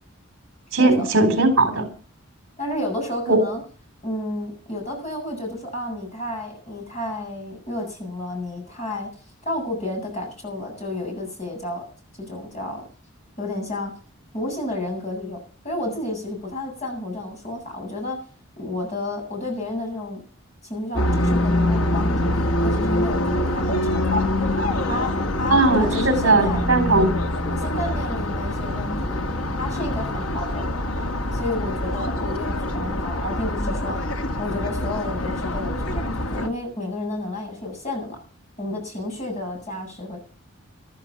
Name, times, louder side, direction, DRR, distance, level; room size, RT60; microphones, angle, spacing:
voice 1, 0.7-1.9 3.3-3.4 25.5-26.0 26.2-27.1, right 2 dB, 65° right, 7 dB, 3.8 m, -18 dB
voice 2, 2.6-3.6 4.0-9.1 9.4-11.8 12.2-12.8 13.4-13.9 14.3-15.4 15.6-18.2 18.6-20.2 20.6-22.3 22.6-24.2 24.9-26.6 27.5-29.3 29.6-30.8 31.3-34.0 34.4-38.2 38.6-40.2, left 1 dB, 30° left, 1 dB, 7.7 m, -31 dB
sound 1, 20.9-36.5, left 1 dB, 75° left, 2.0 m, -24 dB
14.0 x 13.0 x 5.9 m, 0.41 s
head